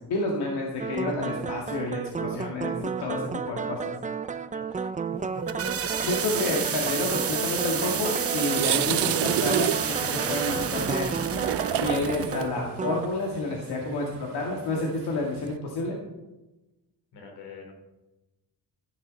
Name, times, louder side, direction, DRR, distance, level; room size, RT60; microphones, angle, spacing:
voice 1, 0.1-3.9 6.0-11.2 11.7-16.0, left 2 dB, 70° left, -2 dB, 2.3 m, -30 dB
sound 1, 0.8-13.1, right 6 dB, 20° right, 0.5 m, -32 dB
voice 2, 4.3-4.9 6.4-6.6 17.1-17.7, left 4 dB, 85° left, 2 dB, 3.6 m, -45 dB
sound 2, 5.2-12.5, right 7 dB, 35° right, 0.9 m, -31 dB
sound 3, 7.8-7.9 8.2-15.6, right 13 dB, 85° right, 0.7 m, -31 dB
13.5 x 10.5 x 4.1 m, 1.0 s
cardioid pair, 110°, 40 cm